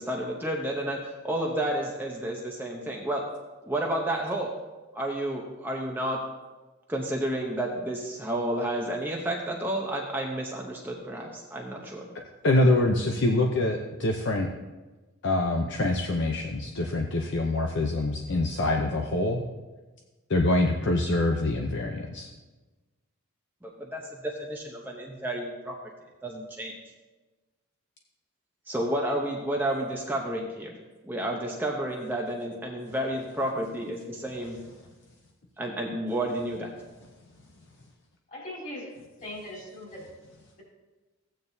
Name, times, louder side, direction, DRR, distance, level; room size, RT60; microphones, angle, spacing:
voice 1, 0.0-3.2 3.7-4.5 4.9-6.2 6.9-12.1 23.6-25.7 26.2-26.7 28.7-30.8 31.0-34.6 35.6-36.7, right 1 dB, 10° right, -1 dB, 0.8 m, -31 dB
voice 2, 12.4-14.5 15.2-19.4 20.3-22.3, left 2 dB, 55° left, 2 dB, 0.7 m, -25 dB
voice 3, 38.3-38.9 39.2-40.0, left 1 dB, 35° left, -4 dB, 3.5 m, -39 dB
14.5 x 8.9 x 2.7 m, 1.2 s
head